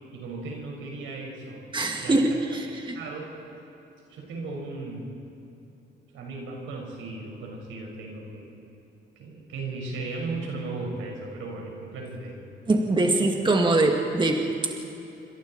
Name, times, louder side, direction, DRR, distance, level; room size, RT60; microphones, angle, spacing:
voice 1, 0.1-1.6 2.0-2.6 2.9-3.3 4.1-5.1 6.1-8.5 9.2-12.4 12.9-13.3, right 3 dB, 85° right, 0 dB, 5.6 m, -36 dB
voice 2, 1.7-3.0 12.7-14.4, right 2 dB, 25° right, 2 dB, 2.2 m, -23 dB
28.0 x 25.0 x 4.4 m, 2.9 s
cardioid pair, 90°, 20 cm